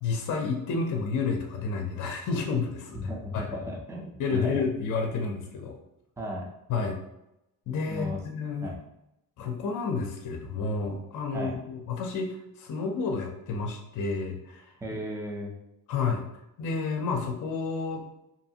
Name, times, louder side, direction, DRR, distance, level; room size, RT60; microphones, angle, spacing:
voice 1, 0.0-3.0 3.3-3.5 4.2-5.8 6.7-7.0 7.7-8.7 9.4-14.7 15.9-16.2 16.6-18.0, left 4 dB, 60° left, 2 dB, 0.6 m, -30 dB
voice 2, 2.9-4.6 6.2-6.5 7.9-8.2 8.6-8.8 11.3-11.6 14.8-15.5, equal, 10° right, 0 dB, 0.4 m, -35 dB
2.7 x 2.5 x 2.7 m, 0.86 s
cardioid pair, 135°, 36 cm